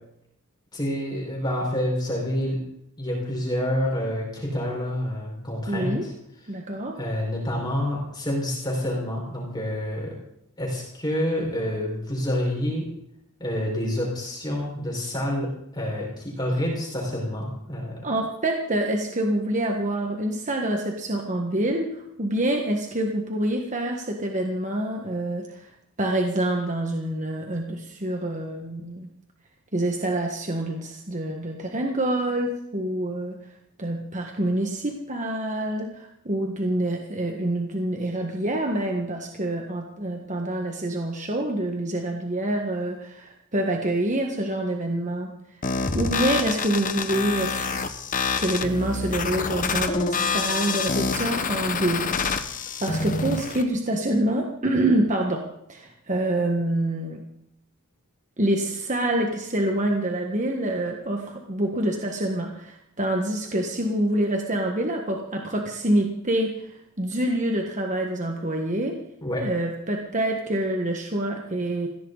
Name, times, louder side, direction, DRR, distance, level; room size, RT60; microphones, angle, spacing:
voice 1, 0.7-2.6 3.0-6.1 7.0-10.2 10.6-12.9 13.4-18.1 69.2-69.4, left 1 dB, 20° left, -2 dB, 5.4 m, -28 dB
voice 2, 5.7-6.0 6.5-6.9 18.0-25.7 26.0-29.1 29.7-33.4 33.8-45.3 45.9-47.9 48.4-55.4 55.7-57.2 58.4-68.9 69.4-71.9, right 1 dB, 35° right, 2 dB, 1.7 m, -26 dB
sound 1, 45.6-53.6, left 4 dB, 35° left, 1.2 m, -27 dB
21.5 x 16.0 x 4.1 m, 0.76 s
head